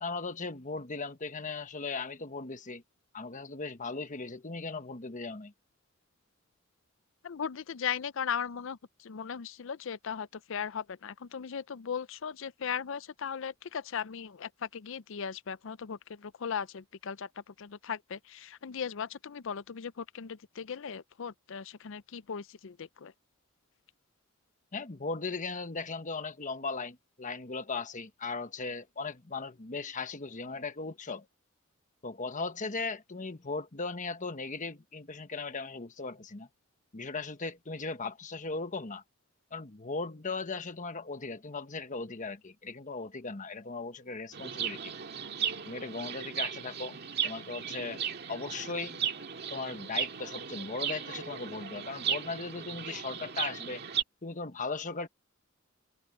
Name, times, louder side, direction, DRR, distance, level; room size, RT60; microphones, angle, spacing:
voice 1, 0.0-2.8 3.1-5.5 24.7-31.3 32.0-36.5 36.9-39.0 39.5-44.9 45.7-48.0 48.3-49.0 49.5-53.8 54.2-55.1, left 4 dB, 40° left, 1.2 m, -38 dB
voice 2, 7.2-23.1, left 7 dB, 65° left, 0.5 m, -38 dB
Chirp tweet, 44.3-54.0, right 8 dB, 55° right, 2.0 m, -36 dB
head